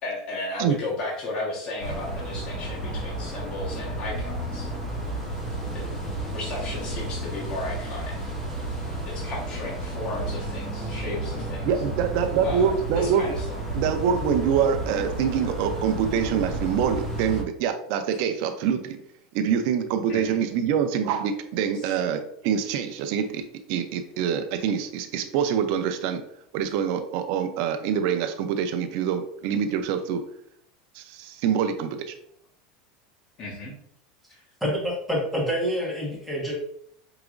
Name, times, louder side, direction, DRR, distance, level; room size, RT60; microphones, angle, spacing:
voice 1, 0.0-4.7 5.7-5.9 6.3-8.4 9.0-11.7 12.4-13.5 20.1-20.4 21.7-21.9 33.4-33.7, left 2 dB, 35° left, -6 dB, 1.2 m, -34 dB
sound 1, 1.8-17.4, right 1 dB, 15° left, 1.3 m, -32 dB
voice 2, 11.6-13.2 13.7-19.0 19.3-26.2 26.5-30.2 31.0-32.1, right 7 dB, 60° right, 7 dB, 0.5 m, -25 dB
voice 3, 34.6-36.5, equal, ahead, -4 dB, 1.4 m, -27 dB
4.8 x 2.9 x 2.5 m, 0.68 s
supercardioid pair, 140°, 3 cm